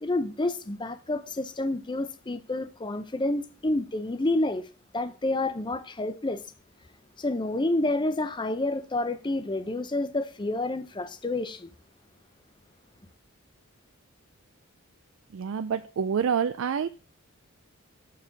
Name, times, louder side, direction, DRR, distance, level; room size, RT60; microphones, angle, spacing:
voice 1, 0.0-4.7 4.9-6.4 7.2-11.7, left 2 dB, 20° left, 0.6 m, -29 dB
voice 2, 15.3-16.9, right 7 dB, 65° right, 0.4 m, -27 dB
6.7 x 4.7 x 5.9 m
head